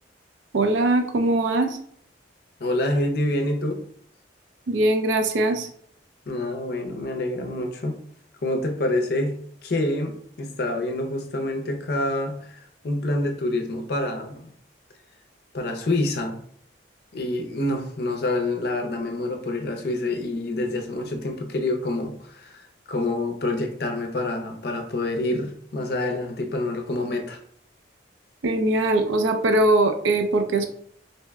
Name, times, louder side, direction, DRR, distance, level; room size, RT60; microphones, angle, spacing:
voice 1, 0.5-1.8 4.7-5.7 28.4-30.6, right 2 dB, 80° right, 6 dB, 0.4 m, -21 dB
voice 2, 2.6-3.8 6.3-8.0 8.4-9.4 9.6-14.5 15.5-16.4 17.1-27.4, left 2 dB, 55° left, 4 dB, 0.5 m, -27 dB
2.7 x 2.1 x 3.3 m, 0.63 s
head